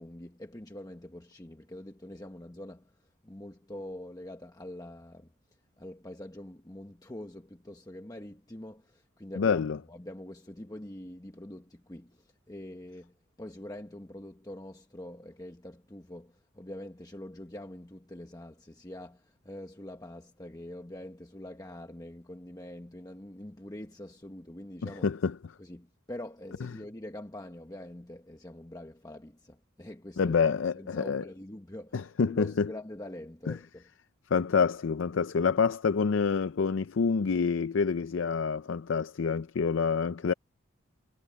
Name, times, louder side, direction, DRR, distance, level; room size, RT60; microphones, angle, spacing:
voice 1, 0.0-2.9 3.2-5.3 5.8-25.1 25.6-30.4 30.7-33.9, left 1 dB, 20° left, 1.1 m, -44 dB
voice 2, 9.4-9.8 24.8-25.3 30.2-31.2 31.9-32.7 34.3-40.3, left 5 dB, 70° left, 0.5 m, -27 dB
head